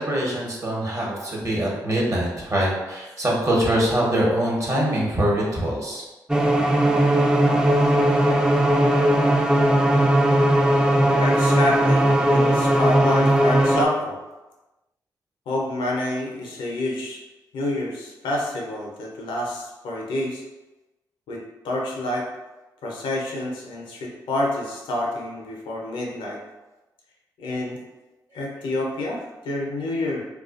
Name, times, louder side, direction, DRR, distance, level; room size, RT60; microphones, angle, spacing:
voice 1, 0.0-6.0, right 1 dB, 40° right, -3 dB, 1.0 m, -23 dB
sound 1, 6.3-13.9, right 1 dB, 10° right, 0.4 m, -18 dB
voice 2, 11.1-14.2 15.5-17.2 17.5-20.4 21.3-22.3 22.8-26.4 27.4-27.8 28.3-30.2, left 1 dB, 80° left, -1 dB, 0.6 m, -28 dB
2.4 x 2.3 x 2.4 m, 1.1 s
supercardioid pair, 45°, 9 cm